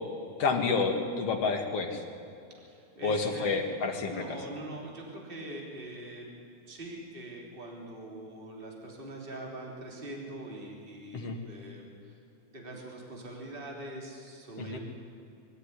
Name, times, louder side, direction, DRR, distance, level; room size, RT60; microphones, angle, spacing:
voice 1, 0.4-2.0 3.0-4.1 11.1-11.4 14.6-14.8, left 4 dB, 55° left, 3 dB, 2.9 m, -29 dB
voice 2, 2.6-3.7 4.1-6.3 6.6-12.2 12.5-14.8, right 1 dB, 15° right, -1 dB, 3.5 m, -43 dB
23.0 x 14.0 x 10.0 m, 2.6 s
omnidirectional pair, 3.5 m